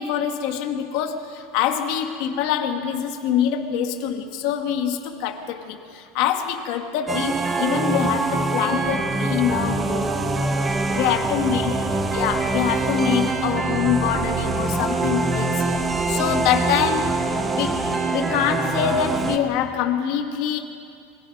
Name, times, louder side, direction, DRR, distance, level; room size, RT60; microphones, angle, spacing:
voice 1, 0.0-10.2 10.9-15.7 16.1-17.2 17.5-20.6, left 9 dB, 45° left, 5 dB, 1.4 m, -25 dB
sound 1, 7.1-19.4, right 3 dB, 10° right, 0.9 m, -24 dB
sound 2, 8.7-17.0, right 2 dB, 30° right, 5.7 m, -36 dB
26.0 x 23.0 x 5.3 m, 2.3 s
supercardioid pair, 180°, 0 cm